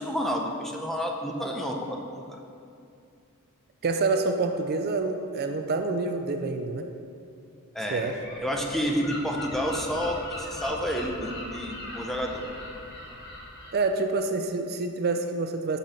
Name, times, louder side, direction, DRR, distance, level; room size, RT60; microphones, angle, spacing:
voice 1, 0.0-2.2 7.7-12.4, equal, ahead, 0 dB, 0.7 m, -30 dB
voice 2, 3.8-6.9 7.9-8.2 13.7-15.8, right 3 dB, 45° right, 6 dB, 0.4 m, -27 dB
Gull seagull, 8.0-13.7, left 1 dB, 55° left, 1.4 m, -39 dB
6.7 x 6.3 x 5.7 m, 2.5 s
head